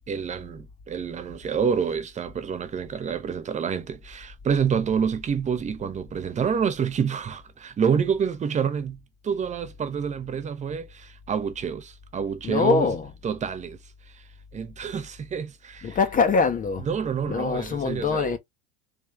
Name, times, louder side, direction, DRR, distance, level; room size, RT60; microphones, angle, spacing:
voice 1, 0.1-12.9 13.2-13.8 14.1-14.2 14.5-16.0 16.9-18.3, right 7 dB, 20° right, 0.7 m, -28 dB
voice 2, 12.4-13.1 15.8-16.9 17.3-18.4, left 5 dB, 25° left, 0.8 m, -23 dB
3.6 x 3.2 x 3.2 m
figure-of-eight pair, 70°, 34 cm